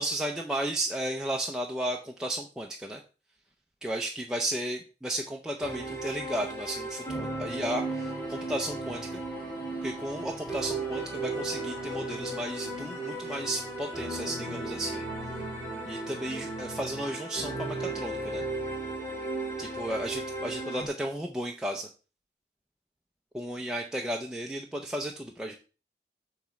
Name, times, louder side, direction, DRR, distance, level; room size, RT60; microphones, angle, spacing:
voice 1, 0.0-3.0 3.8-9.2 9.8-15.0 15.8-18.4 19.6-21.9 23.3-25.5, right 1 dB, 5° right, 1 dB, 0.5 m, -34 dB
sound 1, 5.6-20.9, right 2 dB, 15° left, 2.0 m, -35 dB
7.8 x 3.1 x 5.8 m, 0.35 s
head